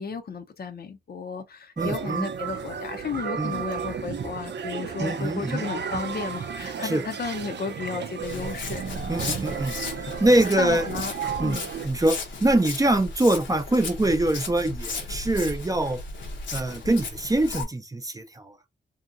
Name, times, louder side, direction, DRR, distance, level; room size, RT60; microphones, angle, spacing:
voice 1, 0.0-9.0 10.6-11.6, left 5 dB, 55° left, 0.6 m, -33 dB
voice 2, 1.8-2.3 3.4-3.5 5.0-5.6 6.8-7.0 9.1-10.9 11.4-11.6 11.8-16.0 16.5-18.5, right 1 dB, 20° right, 0.5 m, -24 dB
sound 1, 1.8-11.9, right 7 dB, 70° right, 0.5 m, -33 dB
Walk footsteps, 8.2-17.6, left 3 dB, 85° left, 0.8 m, -35 dB
2.7 x 2.7 x 2.4 m
cardioid pair, 60°, 19 cm